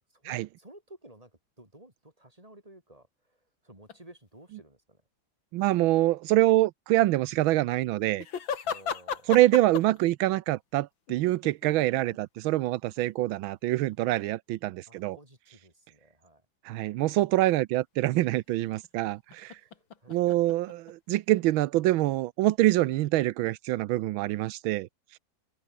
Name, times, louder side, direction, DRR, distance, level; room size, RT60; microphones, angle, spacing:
voice 1, 0.1-1.3 1.6-3.4 3.6-5.0 8.6-9.5 14.9-16.4 19.5-20.5, right 1 dB, 15° right, 5.8 m, -53 dB
sound 1, 3.9-4.0 8.2-10.1 11.1-12.2 12.9-13.0 13.9-14.0 18.8-21.2, left 7 dB, 75° left, 2.7 m, -35 dB
voice 2, 5.5-8.2 9.3-15.2 16.6-19.6 20.1-24.9, right 16 dB, 90° right, 1.4 m, -25 dB
omnidirectional pair, 2.2 m